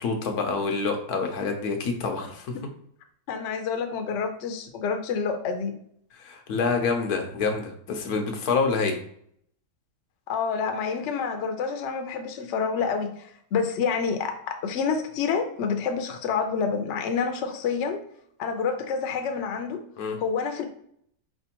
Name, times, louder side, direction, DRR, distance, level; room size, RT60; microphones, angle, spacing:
voice 1, 0.0-2.5 6.2-9.0 20.0-20.2, left 4 dB, 85° left, 4 dB, 1.3 m, -27 dB
voice 2, 3.3-5.7 10.3-18.0 18.4-19.8 20.2-20.7, left 5 dB, 60° left, 5 dB, 0.8 m, -28 dB
4.4 x 3.3 x 2.8 m, 0.68 s
omnidirectional pair, 1.6 m